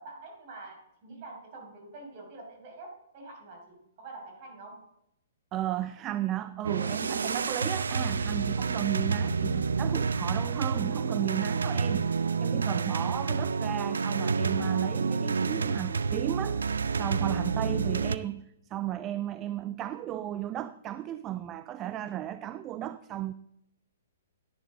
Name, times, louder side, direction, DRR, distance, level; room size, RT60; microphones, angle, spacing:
voice 1, 0.0-4.9, right 2 dB, 45° right, 5.4 m, -46 dB
voice 2, 5.5-18.4 18.7-23.3, right 12 dB, 25° right, 0.5 m, -34 dB
sound 1, 6.6-18.2, right 5 dB, 90° right, 0.5 m, -29 dB
12.0 x 11.0 x 3.8 m
hypercardioid pair, 140°, 0 cm